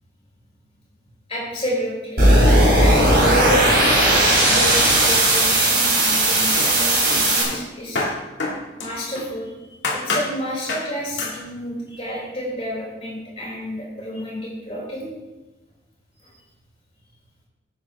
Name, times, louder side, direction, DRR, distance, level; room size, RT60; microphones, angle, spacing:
voice 1, 1.3-2.3 2.8-3.7 4.0-8.1 8.8-9.5 9.9-15.1 16.2-16.3, equal, 30° left, -6 dB, 4.1 m, -29 dB
sound 1, 2.2-7.4, right 1 dB, 50° right, 3.5 m, -16 dB
sound 2, 5.4-6.2 6.6-9.4 9.8-10.3 10.7-10.9 11.2-11.4, left 2 dB, 65° left, 2.3 m, -28 dB
12.5 x 8.6 x 3.5 m, 1.1 s
head